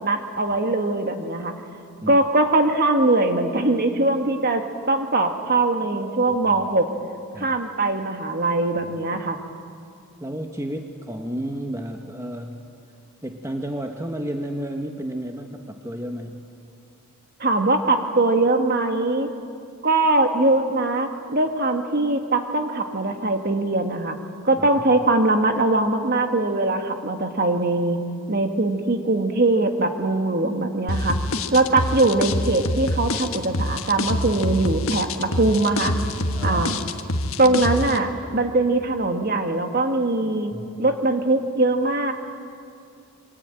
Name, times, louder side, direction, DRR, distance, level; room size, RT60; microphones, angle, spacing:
voice 1, 0.0-1.5 2.1-6.9 7.4-9.4 17.4-19.3 19.8-24.2 24.4-28.0 28.3-31.2 31.5-35.9 36.4-36.8 37.4-40.5 40.8-42.1, right 2 dB, 45° right, 5 dB, 1.9 m, -21 dB
voice 2, 10.2-12.7 13.2-16.5 24.6-24.7 28.3-28.5 36.3-36.6 36.9-37.0 37.4-37.6 40.5-40.8, right 1 dB, 15° right, 4 dB, 1.2 m, -32 dB
sound 1, 30.9-38.0, left 2 dB, 65° left, 1.5 m, -26 dB
27.5 x 23.0 x 9.1 m, 2.4 s
head